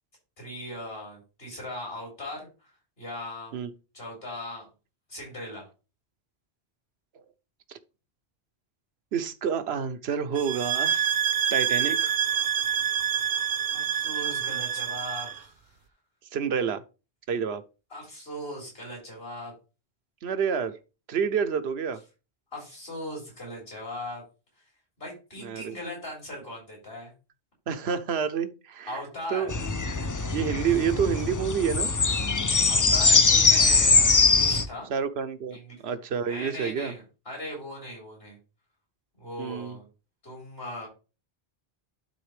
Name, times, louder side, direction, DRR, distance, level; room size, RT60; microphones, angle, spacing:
voice 1, 0.4-2.5 3.0-3.6 3.9-4.7 5.1-5.7 13.7-15.8 17.9-19.5 22.5-24.2 25.0-27.1 28.9-29.5 32.7-34.9 35.5-35.8 36.3-38.4 39.2-39.9 40.2-40.9, left 1 dB, 70° left, 4.3 m, -39 dB
voice 2, 9.1-11.1 11.5-12.1 16.3-16.8 17.3-17.6 20.2-20.8 21.1-22.0 25.4-25.7 27.7-29.0 29.3-29.5 30.3-31.9 34.9-35.6 35.8-36.9 39.4-39.8, right 7 dB, 85° right, 1.0 m, -28 dB
sound 1, 10.4-15.4, right 8 dB, 70° right, 0.9 m, -27 dB
sound 2, 29.5-34.7, left 4 dB, 30° left, 0.3 m, -22 dB
12.0 x 4.0 x 3.3 m
omnidirectional pair, 1.0 m